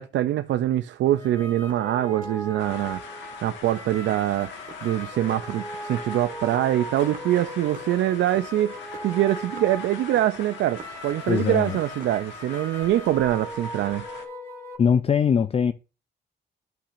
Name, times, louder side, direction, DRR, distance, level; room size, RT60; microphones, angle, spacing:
voice 1, 0.0-4.5 4.8-14.0, right 13 dB, 80° right, 0.4 m, -24 dB
sound 1, 1.0-14.8, right 1 dB, 15° left, 2.2 m, -39 dB
sound 2, 1.7-3.0 3.5-3.7 4.1-7.9 8.2-11.1 11.4-12.3, right 4 dB, 45° right, 1.5 m, -45 dB
sound 3, 2.6-14.3, left 6 dB, 75° left, 1.7 m, -42 dB
voice 2, 11.3-11.8 14.8-15.7, left 7 dB, 30° left, 0.4 m, -21 dB
11.5 x 5.7 x 2.5 m
cardioid pair, 110°, 19 cm